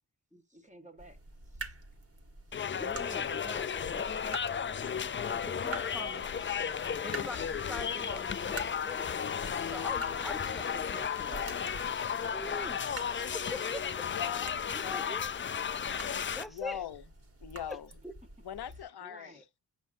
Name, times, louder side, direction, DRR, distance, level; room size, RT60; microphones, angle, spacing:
voice 1, 0.5-1.2 1.5-1.7 2.5-5.5 5.9-6.7 8.8-8.9 19.0-19.5, right 1 dB, 20° right, 1.6 m, -52 dB
sound 1, 1.0-18.8, right 3 dB, 35° right, 1.6 m, -48 dB
sound 2, 2.5-16.4, left 7 dB, 30° left, 0.4 m, -34 dB
voice 2, 2.8-4.1 5.4-6.2 7.0-9.1 9.6-11.5 12.2-12.8 13.2-14.0 14.7-15.3 16.3-16.8 17.7-17.8 18.0-18.1, left 1 dB, ahead, 0.7 m, -44 dB
sound 3, 5.5-14.3, right 4 dB, 65° right, 2.0 m, -56 dB
voice 3, 14.0-15.3 16.5-17.0 17.4-17.9 18.4-19.4, left 10 dB, 80° left, 0.8 m, -41 dB
7.5 x 5.5 x 2.6 m
cardioid pair, 85°, 38 cm